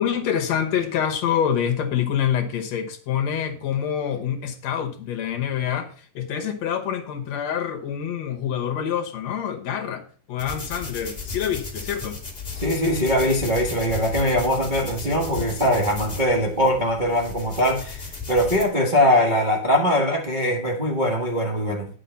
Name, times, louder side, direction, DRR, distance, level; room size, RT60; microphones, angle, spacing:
voice 1, 0.0-12.2, left 8 dB, 65° left, 2.1 m, -26 dB
sound 1, 10.4-18.6, left 4 dB, 15° left, 1.7 m, -35 dB
voice 2, 12.6-21.9, equal, 70° right, 0.4 m, -21 dB
10.0 x 6.1 x 5.6 m
omnidirectional pair, 3.7 m